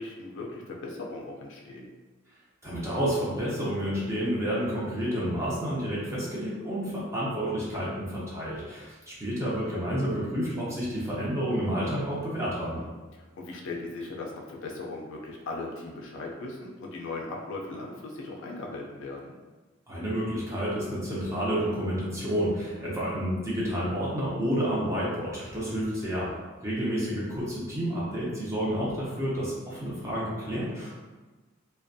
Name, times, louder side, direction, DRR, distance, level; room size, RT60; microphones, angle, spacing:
voice 1, 0.0-1.9 6.9-7.0 12.7-19.3 22.8-23.0 27.1-27.2, left 2 dB, 60° left, -1 dB, 0.4 m, -38 dB
voice 2, 2.6-12.8 19.9-26.3 26.6-30.9, equal, 15° right, -7 dB, 0.6 m, -30 dB
2.4 x 2.2 x 2.5 m, 1.3 s
head